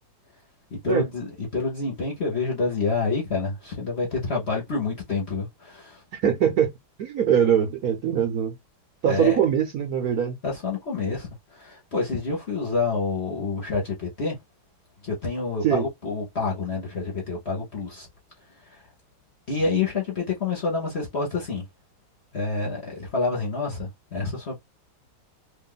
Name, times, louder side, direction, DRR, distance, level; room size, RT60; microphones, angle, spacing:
voice 1, 0.7-6.0 9.1-9.4 10.4-14.4 15.0-18.1 18.7-18.8 19.5-21.7 22.3-24.6, left 4 dB, 40° left, 1.1 m, -28 dB
voice 2, 6.1-6.7 7.0-8.5 9.0-10.4 15.6-15.9, right 9 dB, 60° right, 1.0 m, -22 dB
3.0 x 2.6 x 3.9 m
omnidirectional pair, 2.2 m